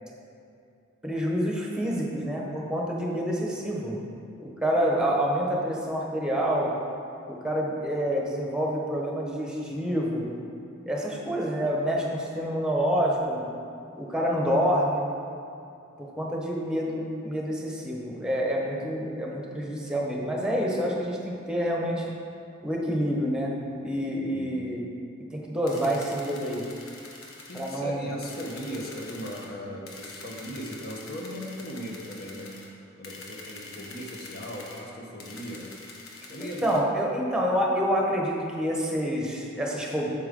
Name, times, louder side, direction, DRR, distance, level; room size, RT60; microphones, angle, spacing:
voice 1, 1.0-4.0 4.4-6.7 7.3-10.3 10.9-13.4 14.0-15.1 16.0-22.1 22.6-23.5 23.8-24.8 25.3-26.6 27.5-28.1 36.4-40.1, equal, 5° right, -2 dB, 1.1 m, -27 dB
voice 2, 24.3-24.8 27.5-32.5 33.0-35.7 36.3-36.9, equal, 50° left, -1 dB, 1.2 m, -38 dB
sound 1, 25.7-27.8 28.2-29.5 29.9-32.7 33.0-34.8 35.2-36.8, left 2 dB, 85° left, 1.3 m, -45 dB
8.8 x 7.0 x 3.8 m, 2.6 s
head